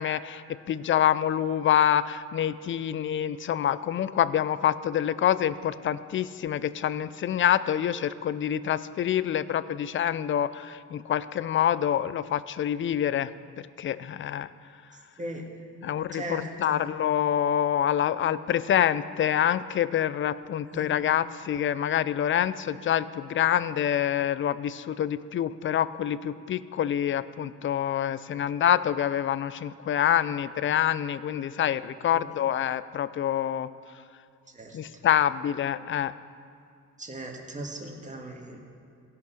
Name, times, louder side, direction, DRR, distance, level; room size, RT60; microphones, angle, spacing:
voice 1, 0.0-13.3 13.8-14.5 15.8-33.7 34.7-36.1, left 10 dB, 40° left, 16 dB, 0.4 m, -26 dB
voice 2, 16.1-16.9 20.7-20.9 28.3-28.4 32.1-32.3 34.5-34.8 37.0-38.6, right 1 dB, 25° right, 1 dB, 1.7 m, -38 dB
16.0 x 5.8 x 5.8 m, 2.4 s
cardioid pair, 90°, 30 cm